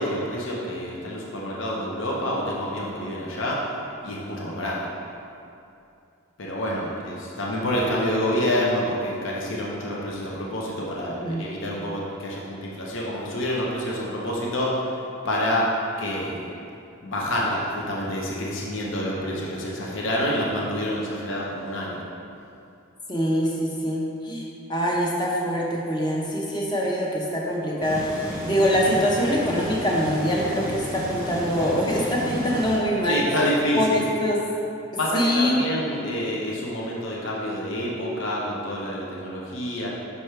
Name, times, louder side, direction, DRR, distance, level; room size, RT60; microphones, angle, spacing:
voice 1, 0.0-3.7 4.0-4.9 6.4-15.0 15.2-16.4 17.0-22.0 33.0-34.0 35.0-39.9, equal, 60° left, -4 dB, 0.8 m, -27 dB
voice 2, 23.1-33.2 33.8-34.4 35.1-35.6, equal, 20° left, -3 dB, 0.8 m, -24 dB
sound 1, 27.8-32.8, right 1 dB, 10° right, 0.8 m, -33 dB
6.2 x 5.6 x 3.3 m, 2.6 s
head